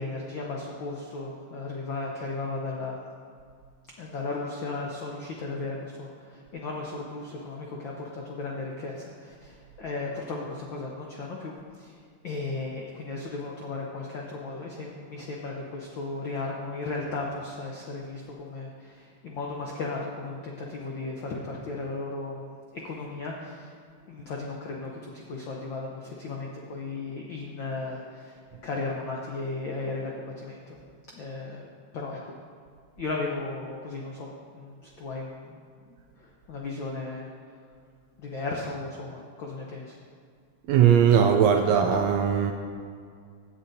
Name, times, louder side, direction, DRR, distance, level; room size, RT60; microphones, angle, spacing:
voice 1, 0.0-3.0 4.0-12.0 12.2-22.5 22.7-23.7 24.0-30.8 31.1-31.6 31.9-32.3 33.0-35.6 36.2-37.3 38.2-40.0, left 3 dB, 80° left, -2 dB, 1.0 m, -35 dB
voice 2, 40.7-42.5, right 8 dB, 80° right, 4 dB, 1.5 m, -19 dB
16.5 x 7.8 x 2.7 m, 2.1 s
omnidirectional pair, 3.4 m